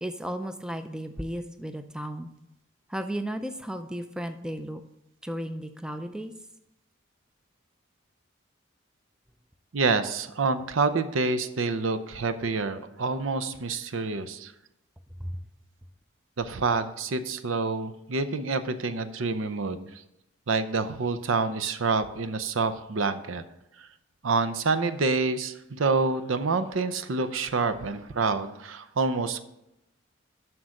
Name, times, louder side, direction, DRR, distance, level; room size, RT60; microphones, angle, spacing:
voice 1, 0.0-2.3 2.9-4.8 5.2-6.3 15.2-15.4, equal, 5° right, 8 dB, 0.4 m, -34 dB
voice 2, 9.7-14.5 16.4-19.9 20.5-23.4 23.8-23.9 24.2-29.4, right 4 dB, 80° right, 12 dB, 0.6 m, -27 dB
7.8 x 6.0 x 6.4 m, 0.88 s
head